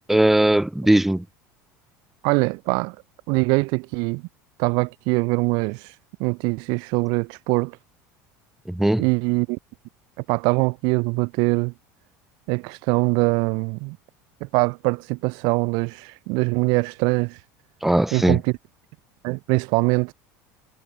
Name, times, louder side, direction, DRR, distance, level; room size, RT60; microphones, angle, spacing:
voice 1, 0.1-1.2 8.7-9.1 17.8-18.4, right 1 dB, 5° right, 0.5 m, -19 dB
voice 2, 2.2-3.0 3.3-4.2 4.6-5.9 6.2-7.8 9.0-9.6 10.3-11.7 12.5-14.0 14.4-17.4 18.1-18.5 19.2-20.1, right 30 dB, 65° right, 0.4 m, -23 dB
supercardioid pair, 100°, 8 cm